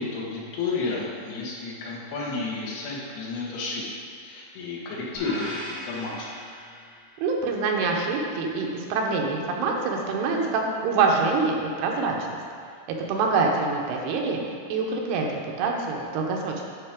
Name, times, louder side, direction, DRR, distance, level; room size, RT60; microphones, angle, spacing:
voice 1, 0.0-3.8 4.2-6.3, left 3 dB, 90° left, -4 dB, 3.3 m, -31 dB
sound 1, 5.1-7.4, left 1 dB, 65° left, 1.1 m, -38 dB
voice 2, 7.2-12.2 13.1-14.4 14.7-16.5, right 4 dB, 90° right, 0 dB, 2.9 m, -25 dB
11.0 x 4.8 x 3.6 m, 2.2 s
omnidirectional pair, 4.5 m